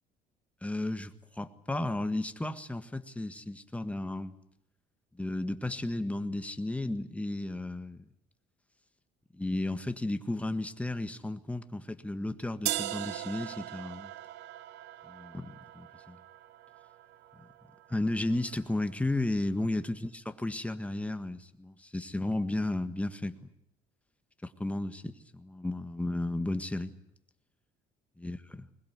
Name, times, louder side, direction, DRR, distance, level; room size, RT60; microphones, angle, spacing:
voice 1, 0.6-4.4 5.1-8.1 9.3-14.1 15.1-16.2 17.9-23.4 24.4-26.9 28.2-28.7, left 2 dB, 10° left, 9 dB, 1.6 m, -34 dB
sound 1, 12.7-18.6, right 14 dB, 85° right, 0.9 m, -40 dB
21.0 x 21.0 x 9.6 m, 0.75 s
cardioid pair, 110°, 17 cm